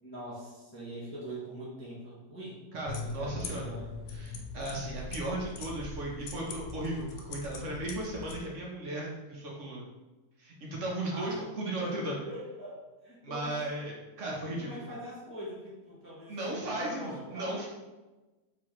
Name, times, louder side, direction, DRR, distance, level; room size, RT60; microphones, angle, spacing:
voice 1, 0.0-2.6 2.9-3.9 11.1-11.4 11.8-13.6 14.2-17.7, equal, 10° left, -7 dB, 0.8 m, -43 dB
voice 2, 2.7-3.7 4.1-9.8 10.4-12.2 13.2-14.9 16.3-17.7, right 1 dB, 55° right, -3 dB, 1.1 m, -36 dB
sound 1, 2.9-8.4, left 3 dB, 85° left, 1.1 m, -41 dB
4.5 x 3.3 x 3.0 m, 1.1 s
omnidirectional pair, 1.7 m